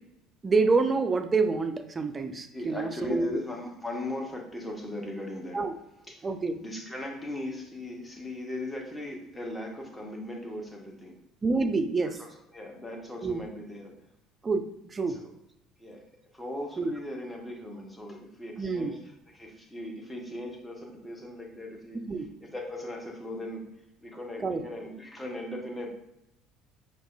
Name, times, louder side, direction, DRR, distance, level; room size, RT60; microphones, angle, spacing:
voice 1, 0.4-3.4 5.5-5.7 6.2-6.6 11.4-12.2 13.2-13.4 14.4-14.6 14.9-15.2 16.8-16.9 18.6-18.9 22.1-22.3 24.4-24.6, right 4 dB, 25° right, 8 dB, 0.3 m, -27 dB
voice 2, 2.5-5.6 6.1-6.3 6.6-11.2 12.0-14.0 15.1-15.3 15.8-16.0 16.3-22.0 22.4-23.7 24.0-25.9, left 1 dB, 10° left, 1 dB, 0.8 m, -38 dB
4.7 x 2.3 x 2.4 m, 0.82 s
figure-of-eight pair, 60°, 0 cm